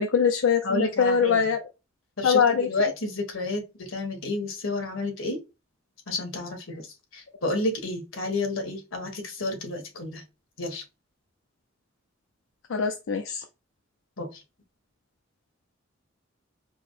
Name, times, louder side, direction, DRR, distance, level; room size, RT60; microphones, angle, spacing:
voice 1, 0.0-1.6 2.2-2.7 12.7-13.4, left 6 dB, 70° left, 0.5 m, -22 dB
voice 2, 0.6-1.4 2.2-5.4 6.1-10.2 10.6-10.8 14.2-14.4, left 2 dB, 90° left, 1.5 m, -30 dB
4.7 x 2.0 x 4.0 m
head